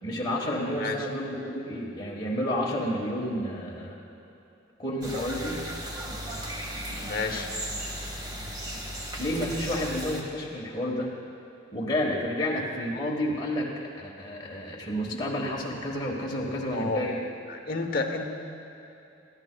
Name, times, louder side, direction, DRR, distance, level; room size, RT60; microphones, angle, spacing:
voice 1, 0.0-4.0 4.8-5.6 9.2-11.1 11.7-17.2, left 1 dB, 20° left, -4 dB, 1.3 m, -30 dB
sound 1, 5.0-10.2, equal, 20° right, 1.2 m, -36 dB
voice 2, 6.7-7.5 16.7-17.0 17.5-18.3, left 3 dB, 50° left, 3 dB, 0.9 m, -31 dB
22.0 x 14.0 x 2.3 m, 2.8 s
head